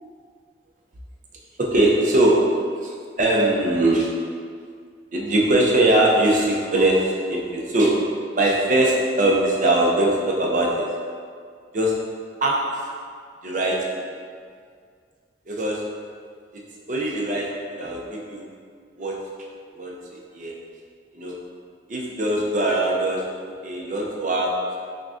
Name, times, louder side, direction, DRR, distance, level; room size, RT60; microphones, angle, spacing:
voice 1, 1.6-4.3 5.1-11.0 11.7-12.0 12.4-12.9 13.4-14.0 15.5-15.9 16.5-16.6 16.9-18.5 19.0-19.3 19.7-20.6 21.1-21.4 21.9-23.3 23.6-24.7, right 1 dB, 45° right, -2 dB, 0.5 m, -21 dB
5.9 x 2.2 x 2.5 m, 2.1 s
head